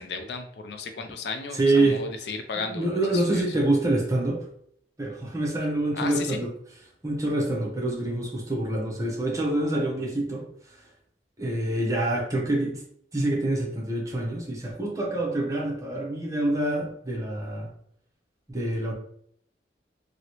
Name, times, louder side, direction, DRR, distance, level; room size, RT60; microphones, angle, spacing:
voice 1, 0.0-3.4 5.9-6.4, left 4 dB, 65° left, 6 dB, 0.4 m, -34 dB
voice 2, 1.5-2.0 2.6-4.4 5.0-6.5 7.0-10.9 11.4-12.8 13.1-17.7 18.5-18.9, right 2 dB, 20° right, -2 dB, 0.7 m, -26 dB
2.9 x 2.7 x 2.9 m, 0.67 s
head